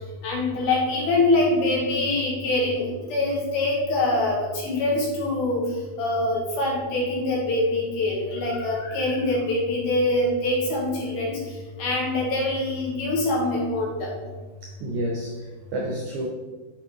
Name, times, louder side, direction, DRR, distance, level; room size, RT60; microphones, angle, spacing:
voice 1, 0.2-5.6 6.0-11.4 11.8-14.1, left 2 dB, 65° left, -3 dB, 2.7 m, -24 dB
voice 2, 14.6-16.3, right 1 dB, 90° right, 0 dB, 1.6 m, -30 dB
7.9 x 4.8 x 3.5 m, 1.3 s
omnidirectional pair, 4.4 m